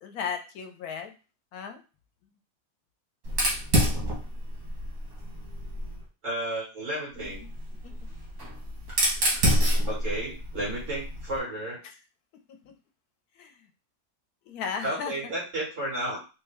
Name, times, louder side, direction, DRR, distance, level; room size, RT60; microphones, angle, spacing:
voice 1, 0.0-1.2 1.5-1.8 7.2-7.5 7.8-8.1 11.8-12.0 12.5-12.8 13.4-13.7 14.5-15.1, left 6 dB, 85° left, 6 dB, 1.1 m, -36 dB
Fire, 3.2-6.0 7.2-11.4, equal, 85° right, 1.9 m, -28 dB
voice 2, 6.2-7.4 9.9-11.8 14.8-16.2, right 1 dB, 55° right, -6 dB, 2.4 m, -32 dB
4.0 x 2.2 x 3.4 m, 0.32 s
omnidirectional pair, 1.6 m